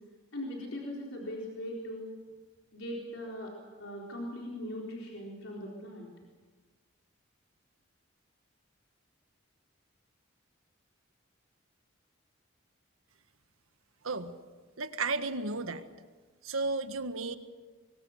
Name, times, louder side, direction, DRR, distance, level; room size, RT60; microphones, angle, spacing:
voice 1, 0.3-2.1 2.7-3.5 3.8-6.1, left 1 dB, 70° left, -2 dB, 4.2 m, -40 dB
voice 2, 14.8-15.9 16.4-17.4, right 3 dB, 90° right, 9 dB, 1.6 m, -33 dB
25.0 x 23.5 x 6.7 m, 1.4 s
head